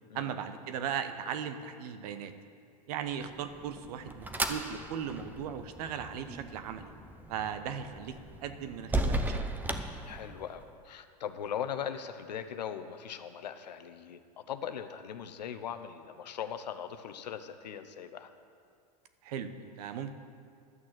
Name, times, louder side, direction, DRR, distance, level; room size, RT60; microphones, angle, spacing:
voice 1, 0.1-2.3 2.9-6.9 7.3-8.1 8.4-9.4 19.2-20.1, right 8 dB, 65° right, 9 dB, 1.0 m, -37 dB
sound 1, 3.3-10.7, right 2 dB, 10° right, 0.7 m, -36 dB
voice 2, 10.0-14.2 14.5-18.3, left 8 dB, 85° left, 9 dB, 0.8 m, -39 dB
12.5 x 6.4 x 7.4 m, 2.3 s
hypercardioid pair, 105°, 21 cm